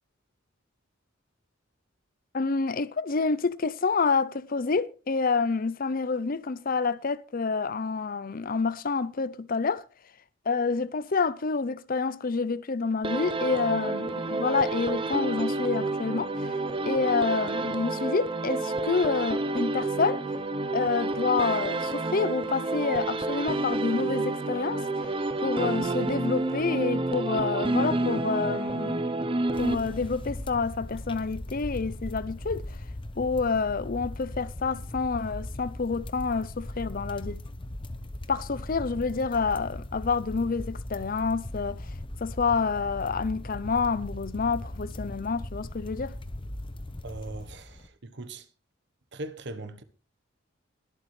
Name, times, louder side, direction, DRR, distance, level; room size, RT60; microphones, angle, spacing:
voice 1, 2.3-9.8 10.5-16.5 16.9-20.3 20.7-24.8 25.4-29.2 29.6-32.8 33.2-37.4 38.3-41.9 42.2-46.1, left 4 dB, 45° left, 0.6 m, -28 dB
sound 1, 13.0-30.3, right 2 dB, 25° right, 0.8 m, -29 dB
sound 2, 29.5-47.9, left 1 dB, 25° left, 0.9 m, -39 dB
voice 2, 47.0-48.5 49.1-49.8, right 2 dB, 60° right, 1.1 m, -40 dB
22.0 x 8.4 x 3.3 m
head